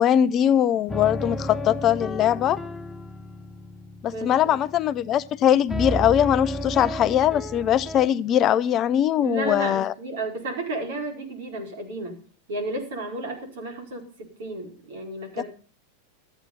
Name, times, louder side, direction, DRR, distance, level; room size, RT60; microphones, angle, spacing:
voice 1, 0.0-2.6 4.0-9.9 15.4-15.5, left 10 dB, 30° left, 17 dB, 0.5 m, -21 dB
sound 1, 0.9-5.4 5.7-8.1, equal, 5° left, 1.1 m, -33 dB
voice 2, 4.1-4.6 9.2-12.2 12.5-15.5, right 2 dB, 55° right, 2 dB, 4.9 m, -32 dB
13.5 x 8.8 x 5.5 m, 0.42 s
figure-of-eight pair, 90°, 0 cm